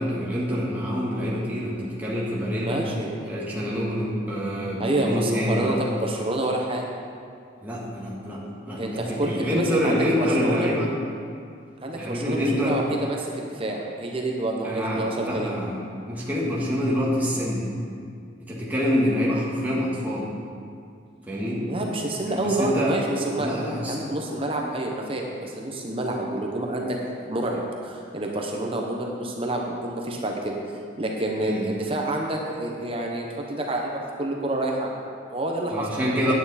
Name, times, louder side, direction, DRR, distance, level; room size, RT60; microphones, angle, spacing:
voice 1, 0.0-2.8 3.3-5.9 7.6-8.4 8.7-10.9 11.9-12.8 14.6-15.8 16.1-17.7 18.4-20.3 21.3-21.6 22.3-22.9 23.4-24.1 31.4-31.7 35.7-36.3, equal, 10° right, -6 dB, 1.7 m, -26 dB
voice 2, 2.6-3.1 4.8-6.8 8.7-10.7 11.8-15.5 21.7-23.5 23.9-27.0 27.2-30.6 31.0-36.3, right 1 dB, 30° right, 0 dB, 0.9 m, -28 dB
9.4 x 9.2 x 4.2 m, 2.3 s
head